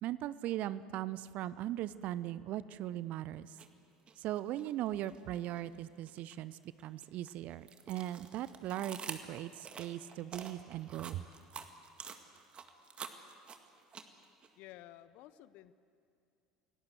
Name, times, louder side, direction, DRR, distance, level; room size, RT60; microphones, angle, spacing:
voice 1, 0.0-3.6 4.2-11.2, right 13 dB, 50° right, 17 dB, 0.6 m, -39 dB
sound 1, 3.5-3.7 4.1-5.6 6.0-14.5, right 6 dB, 35° right, 1.8 m, -47 dB
voice 2, 14.6-15.7, left 14 dB, 55° left, 16 dB, 0.7 m, -53 dB
28.0 x 17.5 x 8.0 m, 2.5 s
figure-of-eight pair, 65°, 3 cm